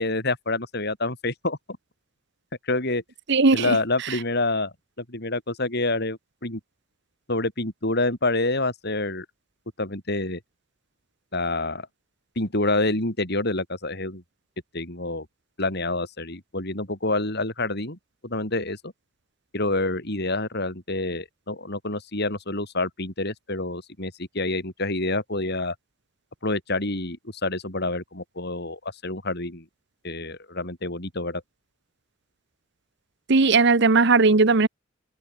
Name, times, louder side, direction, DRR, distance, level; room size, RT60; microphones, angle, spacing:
voice 1, 0.0-1.6 2.6-3.0 3.5-6.6 7.3-9.3 9.8-10.4 11.3-11.9 12.4-14.2 14.7-15.3 15.6-18.9 19.5-25.8 26.4-29.7 30.0-31.4, left 2 dB, 55° left, 7.2 m, -27 dB
voice 2, 3.3-3.8 33.3-34.7, right 3 dB, 60° right, 1.1 m, -17 dB
head